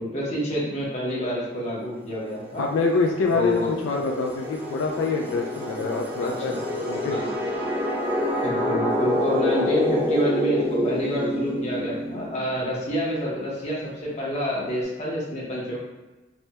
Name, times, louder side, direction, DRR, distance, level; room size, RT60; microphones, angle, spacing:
voice 1, 0.0-2.6 3.3-3.7 6.2-7.3 8.4-15.8, equal, 35° left, -5 dB, 0.8 m, -28 dB
sound 1, 2.2-12.7, left 1 dB, 10° right, 0.3 m, -27 dB
voice 2, 2.6-6.5 6.9-7.5, left 4 dB, 90° left, 1 dB, 0.3 m, -25 dB
3.2 x 2.1 x 2.8 m, 1.2 s
head